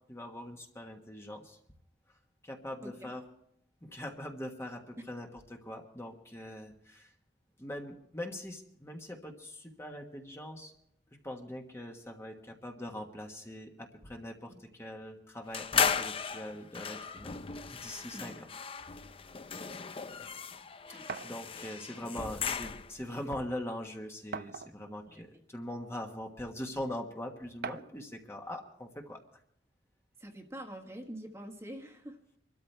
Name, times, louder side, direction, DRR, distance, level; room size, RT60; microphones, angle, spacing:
voice 1, 0.0-1.6 2.4-3.2 3.8-7.1 7.6-10.7 11.2-17.4 17.7-18.3 20.9-29.2, left 1 dB, 15° left, 2 dB, 1.4 m, -42 dB
voice 2, 2.8-3.1 14.5-14.6 18.1-18.4 19.6-19.7 20.9-21.1 22.0-22.3 25.1-25.2 30.2-32.4, right 1 dB, 15° right, 3 dB, 1.5 m, -46 dB
sound 1, 15.5-23.1, left 6 dB, 30° left, 0.5 m, -35 dB
sound 2, 21.1-21.4 22.5-22.6 23.0-23.1 24.3-25.0 25.8-25.9 27.6-28.0, right 5 dB, 60° right, 0.5 m, -40 dB
25.0 x 13.0 x 3.4 m, 0.70 s
head